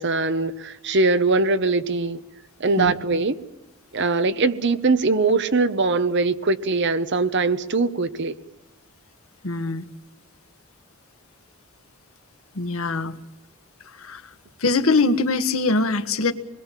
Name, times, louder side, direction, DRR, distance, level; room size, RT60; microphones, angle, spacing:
voice 1, 0.0-2.2 2.6-3.3 3.9-8.3, right 3 dB, 55° right, 1.1 m, -21 dB
voice 2, 9.4-9.9 12.5-13.2 13.9-14.3 14.6-16.3, left 3 dB, 85° left, 1.5 m, -22 dB
26.0 x 22.0 x 7.5 m
head